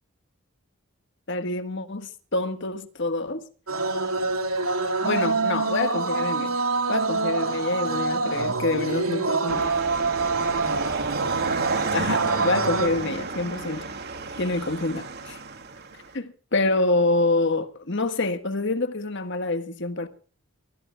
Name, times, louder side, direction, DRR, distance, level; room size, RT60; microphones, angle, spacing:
voice 1, 1.3-3.4 5.0-6.6 6.9-9.7 11.9-13.9 14.4-15.4 16.1-20.1, left 2 dB, 55° left, 1.5 m, -26 dB
sound 1, 3.7-12.9, right 3 dB, 75° right, 2.8 m, -26 dB
sound 2, 9.5-16.1, right 4 dB, 50° right, 2.7 m, -31 dB
25.5 x 20.0 x 2.3 m
head